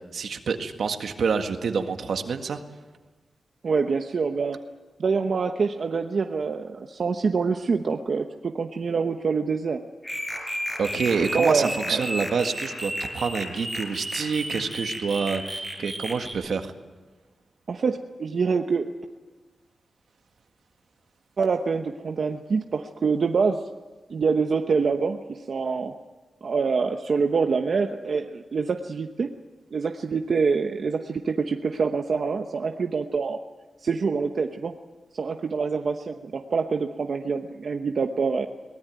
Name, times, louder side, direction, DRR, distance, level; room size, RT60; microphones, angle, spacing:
voice 1, 0.1-2.6 10.8-16.7, right 5 dB, 80° right, 6 dB, 1.8 m, -27 dB
voice 2, 3.6-4.6 5.0-9.8 11.3-12.0 17.7-18.9 21.4-23.7 24.1-25.9 26.4-29.3 29.7-33.4 33.8-34.7 35.1-38.5, right 5 dB, 55° right, 5 dB, 0.9 m, -25 dB
sound 1, 10.0-16.3, equal, 10° left, 5.0 m, -33 dB
23.0 x 19.0 x 9.3 m, 1.3 s
wide cardioid pair, 140°, 0 cm